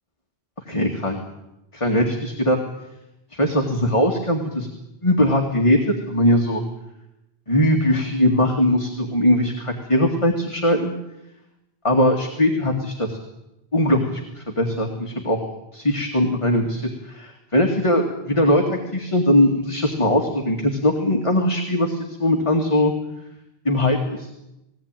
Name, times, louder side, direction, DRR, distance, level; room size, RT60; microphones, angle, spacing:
voice 1, 0.7-1.2 1.7-2.6 3.3-4.7 5.0-6.6 7.5-10.9 11.8-13.2 13.7-15.4 15.7-22.9 23.7-24.3, left 1 dB, 30° left, 1 dB, 2.1 m, -20 dB
20.5 x 17.5 x 9.0 m, 0.90 s
omnidirectional pair, 1.1 m